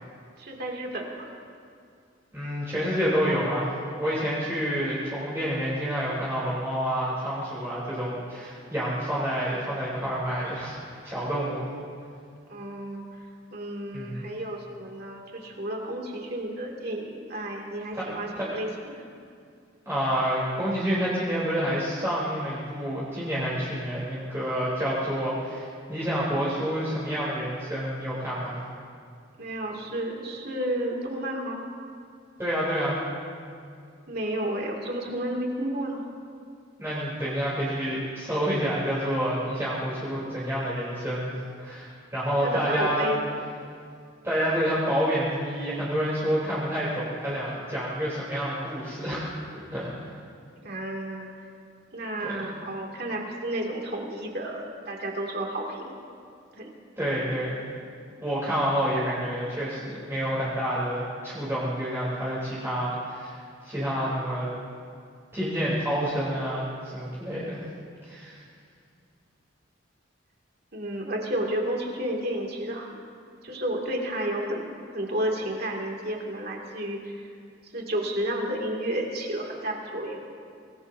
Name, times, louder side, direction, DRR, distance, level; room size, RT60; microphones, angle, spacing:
voice 1, 0.4-1.3 12.5-13.1 13.5-19.0 29.4-31.6 34.1-36.0 42.4-43.4 50.6-51.3 51.9-56.0 56.5-56.7 57.0-57.3 59.1-59.2 70.7-73.0 73.4-77.2 77.7-80.2, right 1 dB, 55° right, -1 dB, 2.5 m, -32 dB
voice 2, 2.3-10.8 11.0-11.6 13.9-14.2 17.9-18.1 18.4-18.5 19.9-28.6 32.4-33.0 36.8-41.3 41.6-43.1 44.2-49.2 49.7-50.1 52.2-52.5 57.0-57.6 58.2-63.4 63.6-64.5 65.3-67.6 68.0-68.4, equal, 15° right, -9 dB, 3.6 m, -28 dB
25.5 x 19.5 x 2.8 m, 2.3 s
head